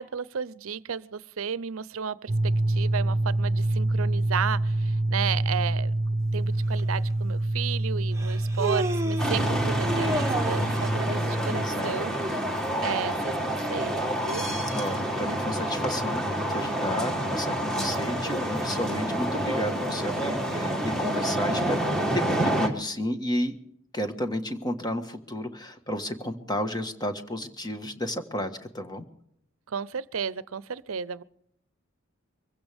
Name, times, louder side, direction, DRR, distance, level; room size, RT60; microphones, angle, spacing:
voice 1, 0.0-5.9 6.3-12.1 12.5-14.5 29.7-31.2, right 7 dB, 80° right, 18 dB, 0.6 m, -33 dB
sound 1, 2.3-11.7, right 2 dB, 40° right, 0.7 m, -26 dB
Human voice, 6.8-6.9 8.2-9.4 9.8-10.8, right 1 dB, 15° right, 1.2 m, -30 dB
sound 2, 9.2-22.7, right 1 dB, 5° left, 2.1 m, -28 dB
voice 2, 11.5-12.0 14.7-21.8 22.1-23.6 23.9-29.0, left 1 dB, 20° left, 6 dB, 1.5 m, -32 dB
23.5 x 16.0 x 3.5 m, 0.74 s
head